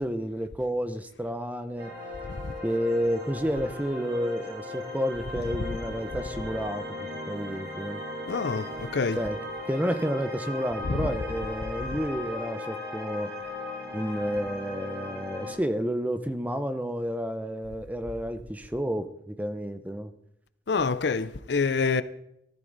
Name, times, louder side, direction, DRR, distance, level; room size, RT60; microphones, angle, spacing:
voice 1, 0.0-1.9 2.6-8.0 9.2-9.4 9.7-13.3 13.9-20.1, equal, 10° right, 0.7 m, -30 dB
sound 1, 1.8-15.5, left 2 dB, 60° right, 5.7 m, -37 dB
voice 2, 8.3-9.2 11.0-11.1 20.7-22.0, left 4 dB, 70° left, 0.6 m, -26 dB
14.5 x 13.5 x 4.0 m
head